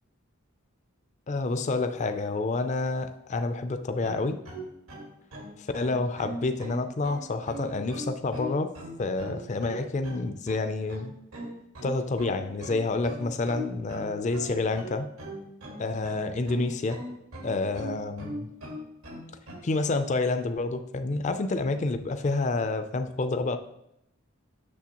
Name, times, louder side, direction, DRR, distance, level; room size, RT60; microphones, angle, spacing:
voice 1, 1.3-4.4 5.6-8.7 9.0-11.1 11.8-15.1 15.8-17.0 17.4-18.5 19.6-23.6, left 3 dB, 35° left, 9 dB, 0.4 m, -28 dB
sound 1, 4.0-19.6, equal, 85° right, 1.7 m, -39 dB
8.4 x 6.4 x 2.9 m, 0.80 s
head